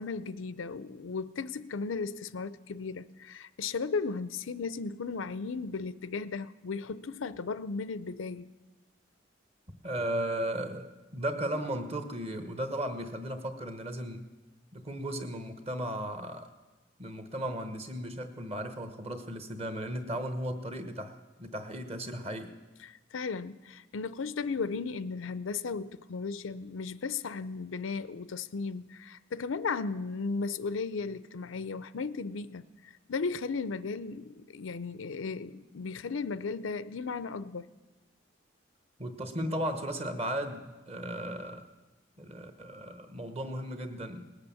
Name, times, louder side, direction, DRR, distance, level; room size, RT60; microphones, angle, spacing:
voice 1, 0.0-8.5 22.8-32.6 33.1-37.7, left 4 dB, 85° left, 0.5 m, -35 dB
voice 2, 9.8-14.3 14.7-16.5 17.0-22.5 39.0-41.7 42.2-44.4, right 1 dB, 30° right, 1.1 m, -36 dB
19.0 x 8.1 x 7.0 m
head